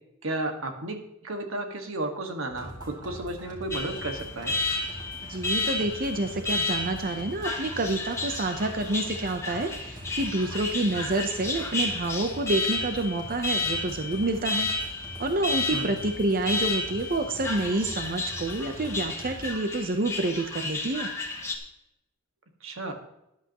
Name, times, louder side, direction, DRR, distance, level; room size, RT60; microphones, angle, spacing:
voice 1, 0.2-4.6 15.7-15.9 22.6-22.9, right 2 dB, 85° right, 5 dB, 1.8 m, -33 dB
sound 1, 2.5-19.5, equal, 20° right, 2.7 m, -44 dB
Alarm, 3.7-21.6, left 3 dB, 15° left, 1.7 m, -32 dB
voice 2, 5.2-14.7 15.2-21.1, right 2 dB, 45° right, 6 dB, 0.8 m, -28 dB
13.5 x 11.0 x 3.0 m, 0.86 s
head